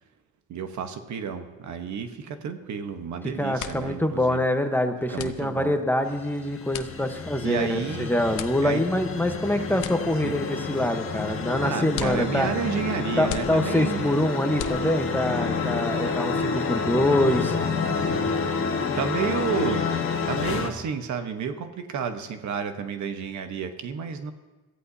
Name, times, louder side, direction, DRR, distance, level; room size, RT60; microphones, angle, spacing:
voice 1, 0.5-4.4 5.1-5.8 7.4-8.1 8.6-8.8 10.2-10.3 11.5-14.1 18.7-19.8 20.2-24.3, right 7 dB, 70° right, 7 dB, 1.2 m, -31 dB
sound 1, 2.9-3.1 3.4-15.3, left 10 dB, 85° left, 0.8 m, -41 dB
voice 2, 3.4-12.5 13.2-17.6, left 1 dB, 5° left, 6 dB, 1.1 m, -25 dB
sound 2, 6.1-20.7, left 5 dB, 45° left, 1.6 m, -29 dB
22.5 x 14.5 x 2.8 m, 1.2 s
cardioid pair, 90°, 30 cm